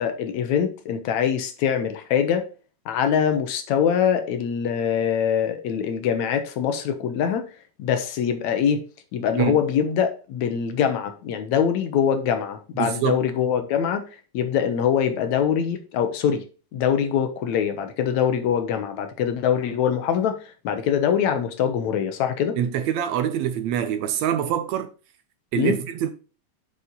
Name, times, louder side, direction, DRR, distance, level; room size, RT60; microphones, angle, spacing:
voice 1, 0.0-2.5 2.9-7.5 7.8-8.8 9.1-14.0 14.3-16.4 16.7-22.6 25.6-25.8, left 8 dB, 75° left, 2.3 m, -23 dB
voice 2, 12.8-13.2 22.6-24.9 25.5-26.1, right 9 dB, 75° right, 1.8 m, -25 dB
8.6 x 4.8 x 3.9 m
omnidirectional pair, 3.5 m